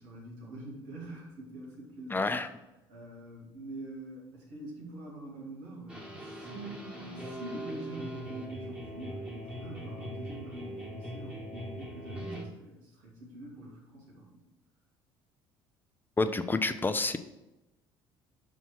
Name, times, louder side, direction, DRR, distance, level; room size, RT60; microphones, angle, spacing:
voice 1, 0.0-2.3 2.9-14.4, right 1 dB, 75° right, -4 dB, 2.4 m, -45 dB
voice 2, 2.1-2.5 16.2-17.2, left 3 dB, 15° left, 10 dB, 0.6 m, -28 dB
sound 1, 5.9-12.4, right 1 dB, 5° right, 1.7 m, -41 dB
5.8 x 4.1 x 6.2 m, 0.99 s
hypercardioid pair, 60°, 13 cm